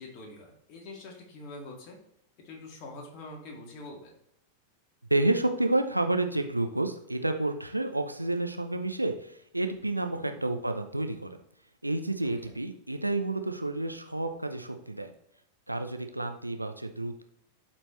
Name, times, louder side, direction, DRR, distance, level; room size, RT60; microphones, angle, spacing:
voice 1, 0.0-2.0 2.4-4.1 10.1-10.4 12.2-12.5, left 2 dB, 40° left, 0 dB, 2.3 m, -45 dB
voice 2, 5.1-11.3 11.8-15.1 15.7-17.2, right 2 dB, 85° right, 7 dB, 0.7 m, -30 dB
12.0 x 4.5 x 3.2 m, 0.75 s
figure-of-eight pair, 90°, 0 cm